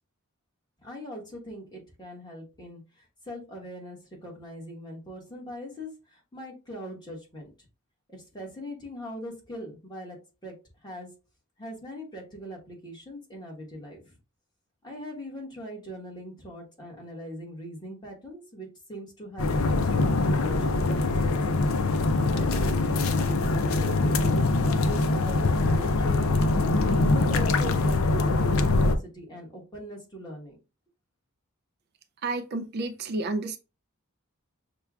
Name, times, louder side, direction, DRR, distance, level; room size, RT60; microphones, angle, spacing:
voice 1, 0.8-7.5 8.1-10.2 10.4-10.5 10.8-11.1 11.6-14.2 14.8-21.6 22.3-26.7 27.1-30.5, equal, 20° left, 1.3 m, -41 dB
sound 1, 19.4-29.0, left 2 dB, 65° left, 0.5 m, -23 dB
voice 2, 32.2-33.6, right 2 dB, 45° right, 0.3 m, -30 dB
6.5 x 2.2 x 2.3 m
head